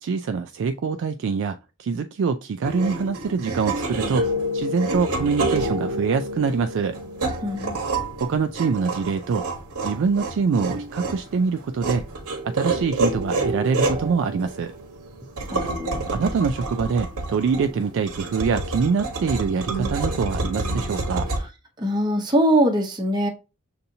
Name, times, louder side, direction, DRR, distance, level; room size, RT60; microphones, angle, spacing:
voice 1, 0.0-4.3 4.5-7.0 8.2-9.5 9.8-12.0 12.4-14.7 16.1-21.3, right 5 dB, 55° right, 0.3 m, -24 dB
sound 1, 2.6-21.4, right 2 dB, 85° right, 1.1 m, -28 dB
voice 2, 7.4-7.8 15.5-16.0 21.8-23.3, equal, 20° right, 0.7 m, -22 dB
6.7 x 2.7 x 2.7 m
head